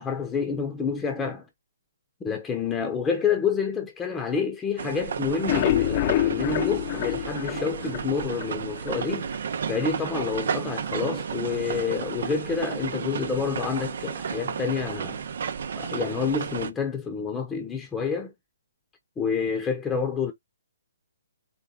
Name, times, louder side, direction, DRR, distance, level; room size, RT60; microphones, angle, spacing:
voice 1, 0.0-1.5 2.2-9.3 9.7-15.2 15.8-18.3 19.2-20.3, left 5 dB, 15° left, 1.0 m, -28 dB
sound 1, 4.8-16.7, right 6 dB, 60° right, 0.8 m, -32 dB
sound 2, 5.3-8.5 8.9-9.0 9.3-9.4 9.8-9.9, left 14 dB, 35° left, 0.3 m, -26 dB
4.5 x 3.3 x 3.6 m
figure-of-eight pair, 135°, 0 cm